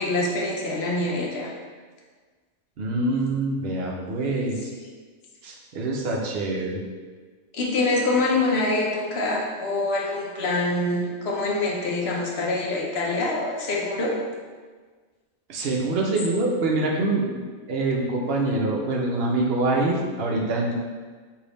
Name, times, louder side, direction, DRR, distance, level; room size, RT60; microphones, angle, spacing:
voice 1, 0.0-1.5 7.5-14.2, left 2 dB, 60° left, -2 dB, 0.8 m, -25 dB
voice 2, 2.8-4.7 5.4-6.8 15.5-20.7, right 2 dB, 55° right, -1 dB, 0.8 m, -25 dB
3.4 x 2.7 x 4.0 m, 1.5 s
omnidirectional pair, 1.3 m